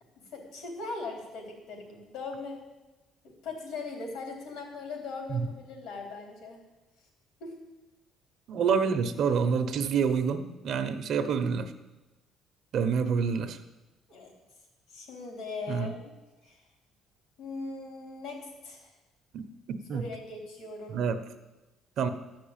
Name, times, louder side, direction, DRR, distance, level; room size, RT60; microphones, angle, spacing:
voice 1, 0.3-2.6 3.2-6.6 7.4-7.6 14.1-14.3 14.9-16.1 16.4-16.6 17.4-18.9 19.9-21.0, left 3 dB, 80° left, 1 dB, 3.9 m, -40 dB
voice 2, 8.5-11.7 12.7-13.6 15.7-15.9 19.3-20.1 20.9-21.2 22.0-22.1, right 6 dB, 60° right, 8 dB, 1.0 m, -27 dB
13.0 x 6.0 x 8.9 m, 1.1 s
cardioid pair, 145°, 0 cm